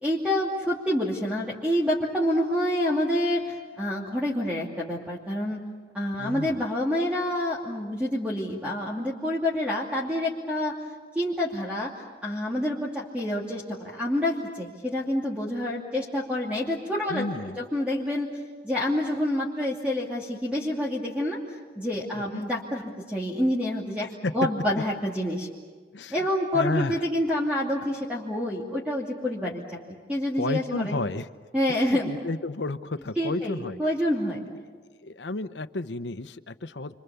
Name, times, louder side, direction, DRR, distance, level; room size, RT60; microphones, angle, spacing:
voice 1, 0.0-5.6 5.9-10.7 11.1-17.3 17.6-18.3 18.6-24.1 24.3-25.5 26.1-31.0 31.5-32.1 33.2-34.4, left 1 dB, 10° right, -5 dB, 2.5 m, -28 dB
voice 2, 6.2-6.6 17.1-17.6 22.1-22.4 24.2-24.3 25.9-26.2 26.5-27.0 30.4-31.3 31.7-33.8 34.6-36.9, left 2 dB, 90° left, 10 dB, 0.9 m, -32 dB
29.5 x 25.0 x 7.1 m, 1.5 s
head